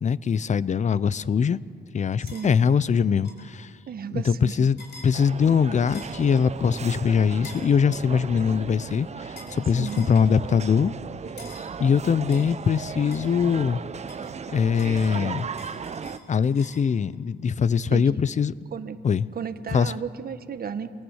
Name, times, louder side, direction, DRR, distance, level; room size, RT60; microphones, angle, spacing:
voice 1, 0.0-1.6 1.9-3.7 4.1-4.8 5.0-10.9 11.8-13.8 14.5-15.5 16.3-18.5 19.0-19.3 19.7-19.9, left 6 dB, 35° left, 19 dB, 0.6 m, -22 dB
sound 1, 2.3-2.5 3.2-3.5 4.8-5.1 5.9-6.2 7.4-7.7 9.4-9.6 9.9-10.2 11.4-11.7 12.3-13.7 14.1-16.9, left 3 dB, 55° left, 4.6 m, -47 dB
voice 2, 3.9-4.7 9.8-10.1 17.9-18.1 18.7-19.0 19.3-20.9, right 7 dB, 50° right, 11 dB, 1.2 m, -33 dB
sound 2, 5.1-16.2, right 6 dB, 35° right, 0.8 m, -36 dB
27.5 x 18.5 x 8.1 m, 2.3 s
cardioid pair, 90°, 20 cm